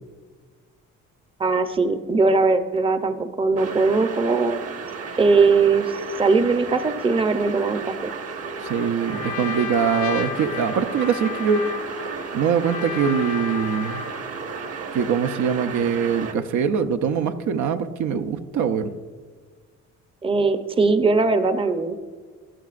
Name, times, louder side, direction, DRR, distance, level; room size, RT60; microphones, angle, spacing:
voice 1, 1.4-4.6 5.2-8.1 20.2-22.0, right 4 dB, 20° right, 9 dB, 0.7 m, -20 dB
sound 1, 3.6-16.3, right 5 dB, 50° right, 1.3 m, -34 dB
Trumpet, 8.6-14.3, left 6 dB, 80° left, 0.7 m, -33 dB
voice 2, 8.6-11.7 12.3-14.0 14.9-18.9, right 7 dB, 75° right, 7 dB, 0.7 m, -23 dB
15.0 x 11.0 x 2.5 m, 1.5 s
cardioid pair, 90°, 30 cm